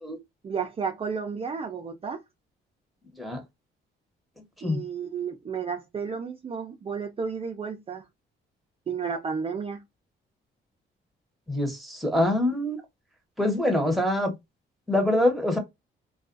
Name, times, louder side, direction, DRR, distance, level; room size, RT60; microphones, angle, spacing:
voice 1, 0.4-2.2 4.6-8.1 8.9-9.8, right 6 dB, 30° right, 0.4 m, -32 dB
voice 2, 11.5-12.8 13.4-14.3 14.9-15.6, left 1 dB, ahead, 0.9 m, -24 dB
2.3 x 2.3 x 2.5 m
cardioid pair, 90°, 20 cm